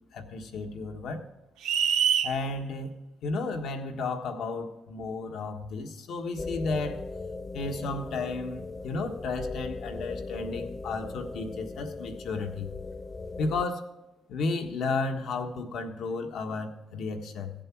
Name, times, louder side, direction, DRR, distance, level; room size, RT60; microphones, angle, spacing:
voice 1, 0.1-1.3 2.2-7.0 7.5-12.7 13.4-13.9 14.3-17.5, left 3 dB, 75° left, 4 dB, 1.5 m, -33 dB
sound 1, 1.6-2.3, right 8 dB, 85° right, 0.7 m, -24 dB
sound 2, 6.4-13.7, left 3 dB, 25° left, 0.5 m, -38 dB
16.0 x 7.8 x 4.7 m, 0.97 s
cardioid pair, 90°, 0 cm